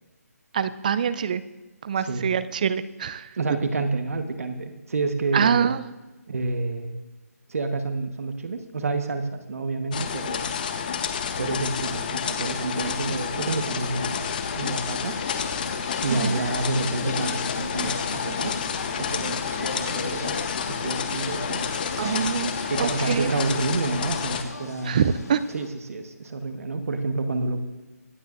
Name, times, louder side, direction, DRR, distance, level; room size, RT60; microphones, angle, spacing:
voice 1, 0.5-1.4 1.8-3.3 5.3-5.8 16.1-16.4 22.0-22.5 22.8-23.3 24.8-25.4, right 7 dB, 30° right, 16 dB, 0.4 m, -24 dB
voice 2, 1.9-2.3 3.4-5.7 6.3-6.9 7.5-10.5 11.4-14.3 14.6-15.1 16.0-18.6 19.0-21.9 22.7-25.0 25.5-27.6, right 3 dB, 60° right, 7 dB, 1.3 m, -29 dB
sound 1, 9.9-24.4, left 7 dB, 30° left, 0.9 m, -30 dB
sound 2, 14.1-25.7, left 4 dB, 70° left, 1.8 m, -36 dB
25.0 x 9.2 x 2.6 m, 1.1 s
hypercardioid pair, 160°, 9 cm